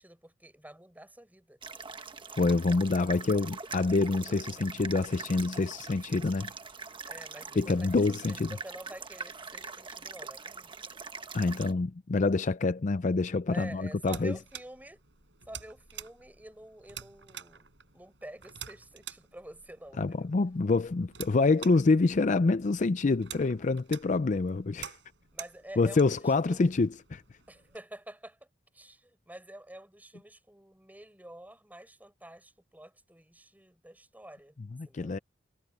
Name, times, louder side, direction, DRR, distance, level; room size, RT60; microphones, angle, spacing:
voice 1, 0.0-1.6 7.0-10.7 13.5-15.0 15.5-20.3 25.3-26.7 27.5-28.4 28.7-34.6 34.8-35.2, right 1 dB, 10° right, 5.0 m, -48 dB
sound 1, 1.6-11.7, right 5 dB, 25° right, 1.2 m, -43 dB
voice 2, 2.3-6.5 7.5-8.6 11.3-14.4 20.0-25.0 25.8-27.2 34.7-35.2, left 3 dB, 40° left, 0.5 m, -26 dB
sound 2, 13.5-27.8, right 9 dB, 75° right, 6.7 m, -49 dB
head